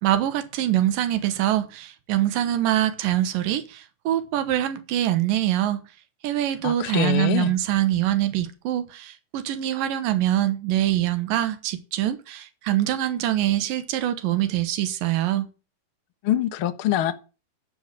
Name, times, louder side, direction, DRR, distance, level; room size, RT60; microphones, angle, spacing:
voice 1, 0.0-5.8 6.2-15.5, right 13 dB, 85° right, 2.8 m, -24 dB
voice 2, 6.6-7.5 16.2-17.1, left 11 dB, 70° left, 1.3 m, -24 dB
13.0 x 4.8 x 7.5 m
omnidirectional pair, 4.0 m